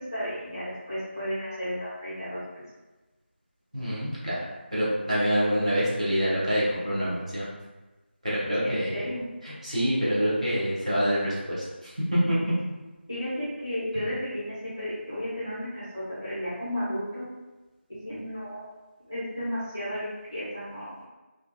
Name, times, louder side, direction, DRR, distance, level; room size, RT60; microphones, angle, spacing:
voice 1, 0.0-2.6 8.6-9.2 13.1-17.3 18.0-18.7 19.1-21.1, equal, 15° left, -12 dB, 0.6 m, -33 dB
voice 2, 3.7-4.4 4.7-7.5 8.2-9.1 9.4-12.4, equal, 35° right, -8 dB, 0.7 m, -26 dB
2.7 x 2.3 x 2.2 m, 1.1 s
figure-of-eight pair, 180°, 6 cm